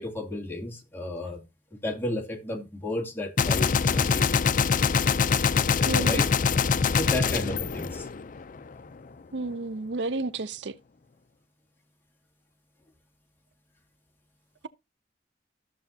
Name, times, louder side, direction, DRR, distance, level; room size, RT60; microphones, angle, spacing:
voice 1, 0.0-1.4 1.8-4.4 5.5-6.3 6.9-8.1, left 1 dB, 15° left, 2.6 m, -33 dB
Gunshot gunfire, 3.4-8.6, left 5 dB, 50° left, 0.5 m, -24 dB
voice 2, 5.9-6.2 9.3-10.8, right 3 dB, 75° right, 0.6 m, -31 dB
13.5 x 7.0 x 2.7 m
head